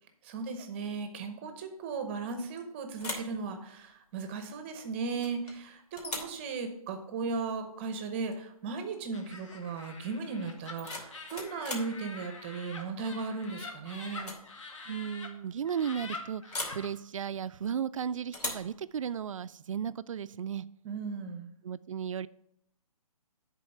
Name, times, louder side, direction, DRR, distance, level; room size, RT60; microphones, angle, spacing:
voice 1, 0.2-14.3 20.8-21.5, right 4 dB, 20° right, 0.7 m, -36 dB
sound 1, 2.3-2.6 3.0-3.4 5.2-5.6 6.0-6.4 8.2-8.4 8.7-9.1 10.5-12.0 13.4-13.7 14.1-14.5 14.7-14.8 16.5-16.9 18.3-18.7, left 2 dB, 85° left, 2.6 m, -39 dB
Laughter, 9.1-15.3 15.6-16.9, left 3 dB, 55° left, 1.5 m, -45 dB
voice 2, 14.9-16.4 16.7-20.7 21.6-22.3, right 8 dB, 55° right, 0.4 m, -35 dB
10.5 x 4.1 x 5.7 m
hypercardioid pair, 160°, 19 cm